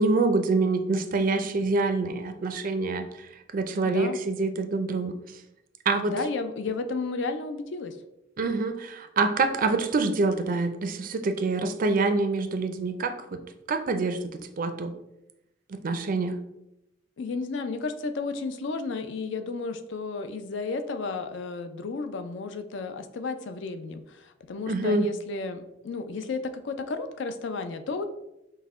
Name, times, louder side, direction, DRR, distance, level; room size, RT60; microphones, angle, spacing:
voice 1, 0.0-3.1 3.5-5.2 5.9-6.1 8.4-13.4 13.7-14.9 15.7-16.4 24.7-25.1, right 3 dB, 45° right, 9 dB, 0.4 m, -26 dB
voice 2, 3.8-4.2 6.1-8.0 17.2-28.1, left 3 dB, 65° left, 9 dB, 0.4 m, -33 dB
5.5 x 2.1 x 3.5 m, 0.89 s
head